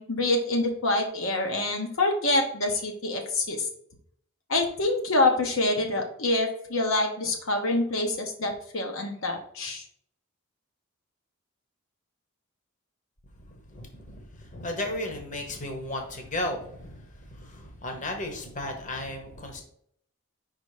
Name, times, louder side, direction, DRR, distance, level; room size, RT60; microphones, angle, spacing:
voice 1, 0.0-3.7 4.5-9.8, left 2 dB, 70° left, 2 dB, 1.0 m, -26 dB
voice 2, 13.5-19.6, left 1 dB, 35° left, 3 dB, 1.1 m, -35 dB
5.3 x 4.0 x 4.9 m, 0.67 s
head